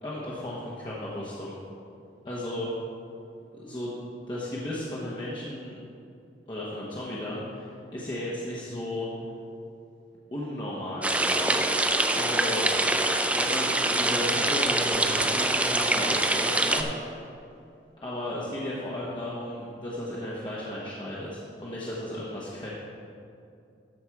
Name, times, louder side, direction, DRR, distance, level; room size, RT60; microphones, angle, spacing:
voice 1, 0.0-1.6 2.2-2.7 3.5-4.0 4.3-5.8 6.5-9.1 10.3-11.7 12.1-12.7 13.3-16.9 18.0-22.7, left 1 dB, 25° left, -7 dB, 1.2 m, -34 dB
sound 1, 11.0-16.8, right 2 dB, 10° right, 0.4 m, -24 dB
13.0 x 5.2 x 4.7 m, 2.5 s
head